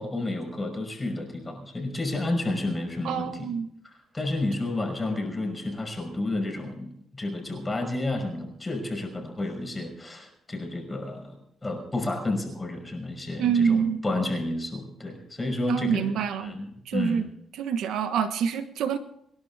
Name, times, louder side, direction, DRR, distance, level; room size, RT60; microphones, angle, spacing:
voice 1, 0.0-3.5 3.8-17.2, left 2 dB, 20° left, 3 dB, 5.6 m, -31 dB
voice 2, 3.0-3.7 13.4-14.0 15.7-16.5 16.8-17.3 17.5-19.0, right 7 dB, 80° right, 8 dB, 1.3 m, -26 dB
26.5 x 11.5 x 3.6 m, 0.75 s
cardioid pair, 90°, 0 cm